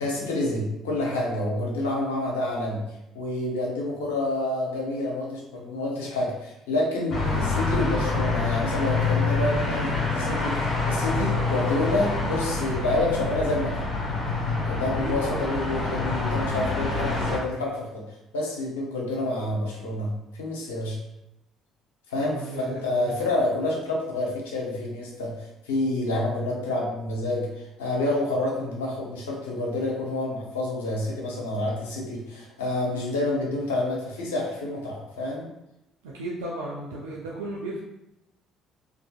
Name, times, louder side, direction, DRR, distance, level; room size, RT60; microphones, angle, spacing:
voice 1, 0.0-2.8 3.1-13.8 14.7-18.0 18.3-21.0 22.1-35.5, left 2 dB, 80° left, -2 dB, 0.6 m, -28 dB
sound 1, 7.1-17.4, left 3 dB, 40° left, 1.3 m, -26 dB
voice 2, 15.0-15.5 22.2-23.1 36.0-37.8, right 2 dB, 80° right, -4 dB, 0.3 m, -34 dB
2.5 x 2.4 x 2.4 m, 0.90 s
hypercardioid pair, 55°, 0 cm